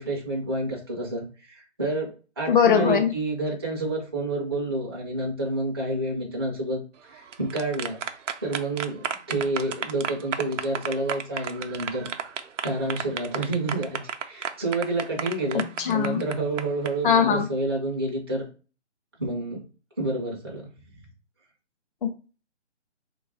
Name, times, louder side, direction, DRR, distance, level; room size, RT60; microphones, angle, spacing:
voice 1, 0.0-8.0 8.4-12.1 12.6-15.6 15.9-18.5 19.2-19.6 20.0-20.7, right 2 dB, 20° right, 0.4 m, -29 dB
voice 2, 2.5-3.1 15.8-16.2 17.0-17.5 22.0-22.1, left 7 dB, 45° left, 0.5 m, -20 dB
sound 1, 7.1-16.9, right 8 dB, 90° right, 0.5 m, -32 dB
2.6 x 2.3 x 4.0 m
hypercardioid pair, 160°, 36 cm